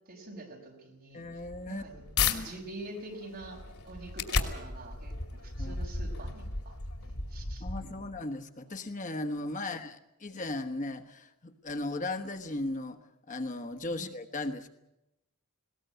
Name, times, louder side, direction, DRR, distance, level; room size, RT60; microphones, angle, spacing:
voice 1, 0.1-1.2 1.7-8.1 9.6-9.8 13.9-14.1, right 2 dB, 45° right, 1 dB, 5.7 m, -46 dB
voice 2, 1.1-1.8 2.2-2.5 5.6-5.8 7.6-13.0 13.3-14.7, left 2 dB, 35° left, 7 dB, 1.2 m, -37 dB
sound 1, 1.2-2.4 2.9-8.2, left 4 dB, 85° left, 2.7 m, -34 dB
20.5 x 18.5 x 9.2 m, 0.91 s
head